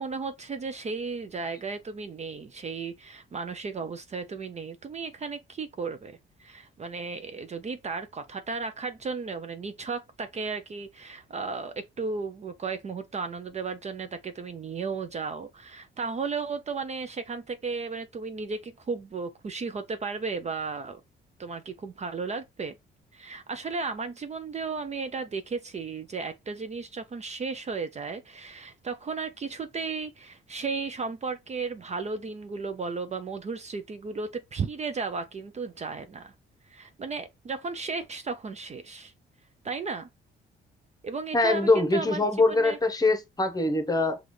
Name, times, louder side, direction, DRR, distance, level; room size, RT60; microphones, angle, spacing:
voice 1, 0.0-21.0 21.4-22.7 23.1-36.3 36.7-39.1 39.6-40.1 41.0-42.8, right 4 dB, 35° right, 0.5 m, -34 dB
voice 2, 41.3-44.2, left 2 dB, 20° left, 0.9 m, -23 dB
5.9 x 2.5 x 3.2 m
cardioid pair, 90°, 20 cm